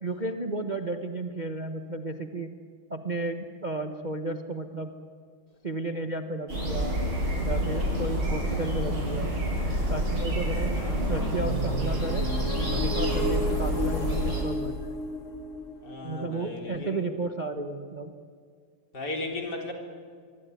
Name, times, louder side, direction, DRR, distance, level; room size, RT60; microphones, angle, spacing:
voice 1, 0.0-2.5 2.9-4.9 5.6-7.0 7.4-9.4 9.9-10.7 11.1-12.3 12.7-14.8 16.0-18.1, right 2 dB, 25° right, 6 dB, 1.2 m, -33 dB
sound 1, 6.5-14.4, equal, 85° right, 8.2 m, -28 dB
sound 2, 11.3-17.1, equal, 40° left, 2.2 m, -33 dB
voice 2, 15.8-17.0 18.9-19.7, left 2 dB, 55° left, 2 dB, 4.6 m, -35 dB
24.5 x 24.5 x 9.4 m, 2.1 s
omnidirectional pair, 2.2 m